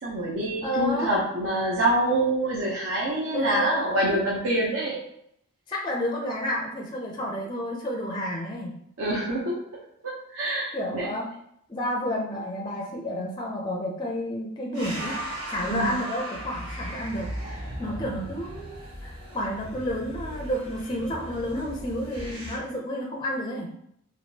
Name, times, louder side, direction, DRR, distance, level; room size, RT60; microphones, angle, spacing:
voice 1, 0.0-5.0 9.0-9.6 10.0-11.1 15.7-16.0, right 1 dB, 60° right, -5 dB, 0.6 m, -26 dB
voice 2, 0.6-1.1 3.3-4.2 5.7-8.7 10.7-11.3 11.7-15.2 15.5-23.7, equal, 20° left, -1 dB, 0.4 m, -30 dB
sound 1, 14.7-22.6, right 1 dB, 85° right, 1.2 m, -37 dB
3.5 x 2.5 x 2.7 m, 0.72 s
head